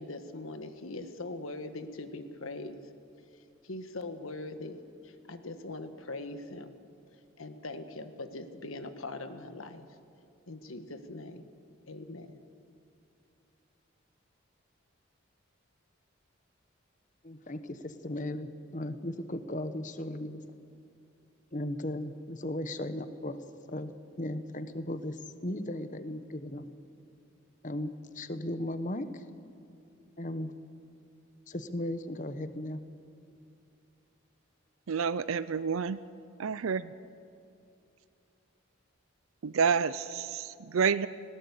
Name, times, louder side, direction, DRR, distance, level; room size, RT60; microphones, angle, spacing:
voice 1, 0.0-2.8 3.6-6.7 7.4-9.9 10.5-11.5 11.9-12.4, left 2 dB, 85° left, 9 dB, 1.5 m, -41 dB
voice 2, 17.2-20.4 21.5-23.4 23.7-23.9 24.2-25.2 25.4-26.6 27.6-29.3 30.2-30.5 31.5-32.8, left 1 dB, 40° left, 11 dB, 1.0 m, -36 dB
voice 3, 34.9-36.0 36.4-36.9 39.4-41.1, right 6 dB, 85° right, 15 dB, 0.5 m, -29 dB
19.5 x 17.5 x 8.3 m, 2.6 s
head